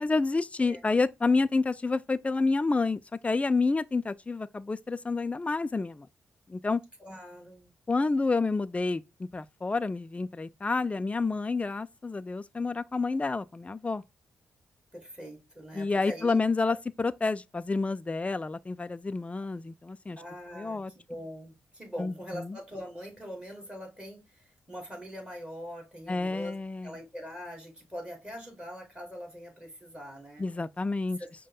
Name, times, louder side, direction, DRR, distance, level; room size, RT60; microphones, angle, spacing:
voice 1, 0.0-6.1 6.5-6.8 7.9-14.0 15.7-20.2 20.6-20.9 22.0-22.5 26.1-26.9 30.4-31.2, left 3 dB, 20° left, 0.4 m, -29 dB
voice 2, 7.0-7.7 14.9-16.4 16.7-16.8 20.2-20.8 21.1-30.5 31.2-31.3, equal, 15° right, 2.6 m, -42 dB
5.2 x 2.2 x 3.9 m
hypercardioid pair, 40°, 6 cm